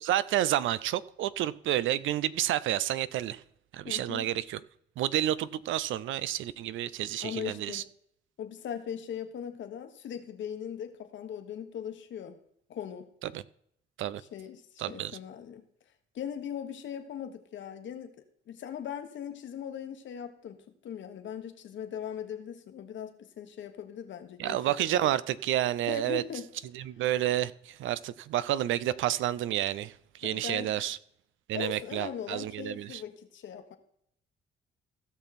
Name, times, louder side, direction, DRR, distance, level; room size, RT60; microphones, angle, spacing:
voice 1, 0.0-3.4 3.7-4.6 5.0-7.8 13.2-13.4 14.0-14.2 14.8-15.2 24.4-26.2 26.7-31.0 31.5-33.0, right 12 dB, 75° right, 0.5 m, -30 dB
voice 2, 3.8-4.3 7.2-7.8 8.4-12.4 12.7-13.1 14.3-15.6 16.1-18.1 18.5-20.6 20.8-25.1 25.9-26.5 30.2-30.7 31.5-33.8, left 8 dB, 70° left, 1.3 m, -39 dB
16.0 x 6.1 x 4.2 m
cardioid pair, 90°, 20 cm